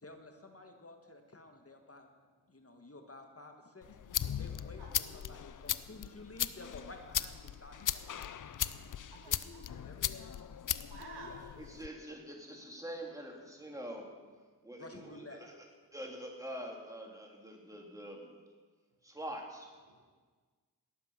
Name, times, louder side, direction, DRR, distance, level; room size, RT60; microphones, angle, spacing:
voice 1, 0.0-2.1 2.5-3.9 4.4-8.0 9.3-10.1 11.2-11.4 14.8-15.4, left 2 dB, 35° left, 4 dB, 1.7 m, -52 dB
sound 1, 3.8-11.9, left 9 dB, 50° left, 0.6 m, -38 dB
voice 2, 4.8-5.1 9.1-9.8 10.9-11.5 12.6-12.7 19.9-20.1, right 3 dB, 85° right, 2 dB, 1.9 m, -52 dB
voice 3, 11.6-14.1 14.6-15.5 15.9-18.3 19.0-19.7, right 1 dB, 10° right, 0 dB, 3.2 m, -45 dB
18.5 x 7.4 x 5.8 m, 1.5 s
cardioid pair, 45°, 40 cm